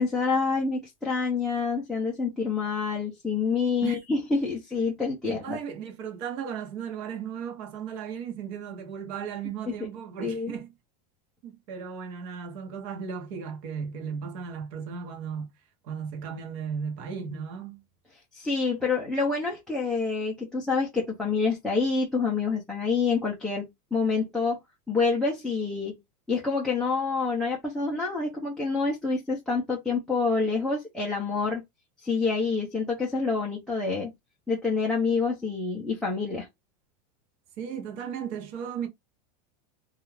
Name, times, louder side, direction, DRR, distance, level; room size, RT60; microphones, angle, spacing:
voice 1, 0.0-5.6 10.2-10.5 18.3-24.6 24.9-26.0 26.3-31.6 32.0-34.1 34.5-36.5, left 4 dB, ahead, 0.4 m, -27 dB
voice 2, 5.2-10.7 11.4-15.5 15.8-17.8 37.6-38.9, right 7 dB, 50° right, 0.9 m, -35 dB
2.4 x 2.3 x 3.1 m
supercardioid pair, 165°, 21 cm